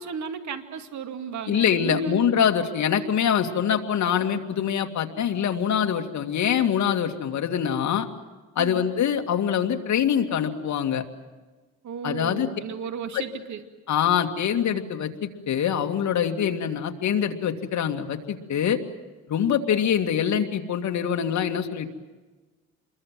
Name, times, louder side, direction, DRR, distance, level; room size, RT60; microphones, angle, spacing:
voice 1, 0.0-2.3 8.6-8.8 11.8-13.6, right 7 dB, 60° right, 7 dB, 2.4 m, -34 dB
voice 2, 1.5-8.1 8.6-11.0 12.0-12.5 13.1-13.2 13.9-18.8 19.3-21.9, left 8 dB, 60° left, 4 dB, 2.4 m, -24 dB
27.5 x 22.5 x 7.7 m, 1.3 s
cardioid pair, 120°, 32 cm